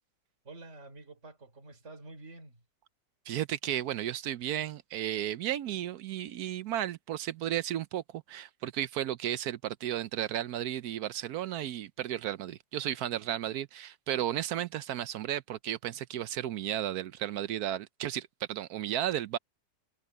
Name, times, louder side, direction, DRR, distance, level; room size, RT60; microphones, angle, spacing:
voice 1, 0.4-2.6, right 2 dB, 40° right, 4.1 m, -49 dB
voice 2, 3.3-19.4, right 11 dB, 70° right, 1.0 m, -34 dB
omnidirectional pair, 1.9 m